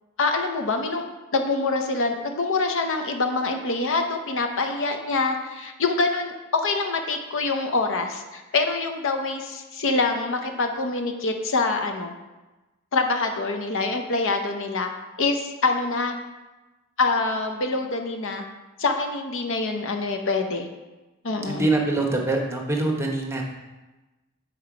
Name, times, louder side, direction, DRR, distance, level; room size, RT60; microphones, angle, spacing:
voice 1, 0.2-1.0 1.3-12.1 12.9-14.9 15.2-16.2 17.0-18.5 18.8-20.7 21.2-21.7, left 3 dB, 60° left, 4 dB, 0.8 m, -25 dB
voice 2, 21.5-23.4, right 2 dB, 10° right, 1 dB, 0.9 m, -24 dB
7.6 x 4.6 x 5.0 m, 1.1 s
head